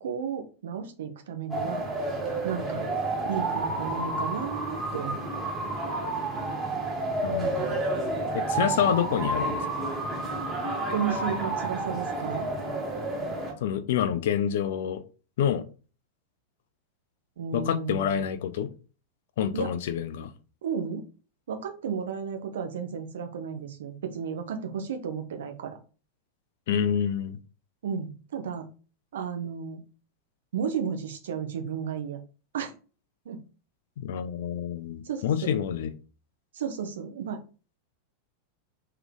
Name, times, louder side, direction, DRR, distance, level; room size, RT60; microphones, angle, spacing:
voice 1, 0.0-1.8 2.4-2.9 3.2-5.2 10.9-12.5 17.4-18.2 19.5-19.7 20.6-21.1 21.5-25.8 27.8-28.7 29.1-29.8 30.5-32.2 32.5-32.7 33.2-33.4 35.0-35.5 36.5-37.4, right 7 dB, 60° right, 0.8 m, -33 dB
sound 1, 1.5-13.5, right 2 dB, 15° right, 1.7 m, -30 dB
voice 2, 7.2-7.8 8.3-9.7 13.6-15.0 15.4-15.6 17.5-18.7 19.4-20.3 26.7-27.4 34.0-35.9, left 8 dB, 55° left, 0.5 m, -27 dB
3.4 x 3.3 x 3.8 m
figure-of-eight pair, 90°, 0 cm